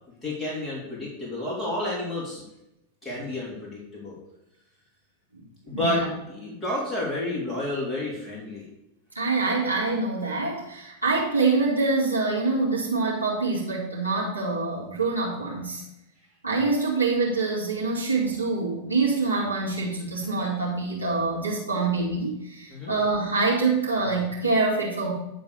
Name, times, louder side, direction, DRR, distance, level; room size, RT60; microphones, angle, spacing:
voice 1, 0.2-2.4 3.0-4.2 5.6-8.7 21.7-21.8 22.7-22.9, left 1 dB, 10° left, -6 dB, 3.5 m, -30 dB
voice 2, 5.7-6.1 9.1-15.8 16.4-25.1, right 3 dB, 85° right, -6 dB, 2.6 m, -25 dB
10.5 x 4.0 x 7.0 m, 0.85 s
figure-of-eight pair, 90°, 0 cm